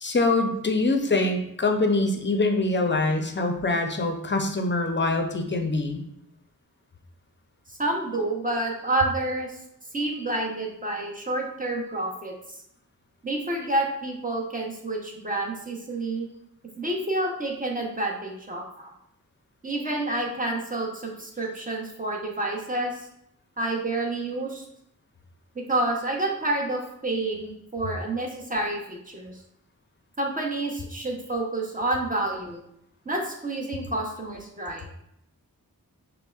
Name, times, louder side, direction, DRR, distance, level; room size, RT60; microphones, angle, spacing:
voice 1, 0.0-6.0, left 2 dB, 30° left, 4 dB, 0.6 m, -24 dB
voice 2, 7.7-9.6 9.9-12.3 13.2-16.3 16.8-18.9 19.6-23.0 23.6-24.6 25.5-29.4 30.2-32.6 33.1-34.9, right 2 dB, 25° right, -1 dB, 0.8 m, -29 dB
5.3 x 2.1 x 2.4 m, 0.77 s
cardioid pair, 55°, 35 cm